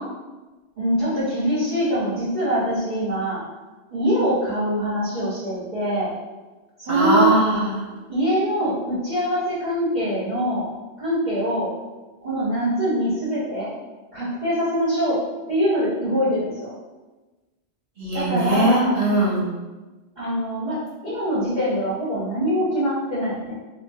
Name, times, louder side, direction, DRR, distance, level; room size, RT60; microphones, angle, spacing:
voice 1, 0.8-3.4 3.9-6.1 6.8-7.3 8.1-10.7 11.0-11.7 12.2-13.7 14.1-15.2 15.5-16.7 18.1-18.9 20.2-23.6, right 1 dB, 40° right, -13 dB, 1.5 m, -23 dB
voice 2, 6.9-7.8 18.0-19.5, right 1 dB, 60° right, -6 dB, 1.5 m, -20 dB
4.8 x 2.8 x 3.5 m, 1.2 s
omnidirectional pair, 1.1 m